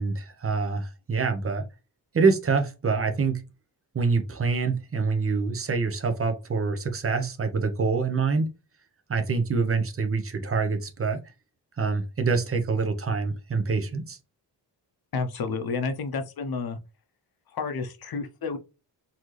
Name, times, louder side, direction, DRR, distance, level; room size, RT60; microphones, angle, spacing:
voice 1, 0.0-1.6 2.1-3.4 3.9-8.5 9.1-11.2 11.8-14.2, right 4 dB, 30° right, 0.8 m, -25 dB
voice 2, 15.1-16.8 17.5-18.6, left 4 dB, 60° left, 0.8 m, -30 dB
4.1 x 2.9 x 3.2 m
wide cardioid pair, 150°, 42 cm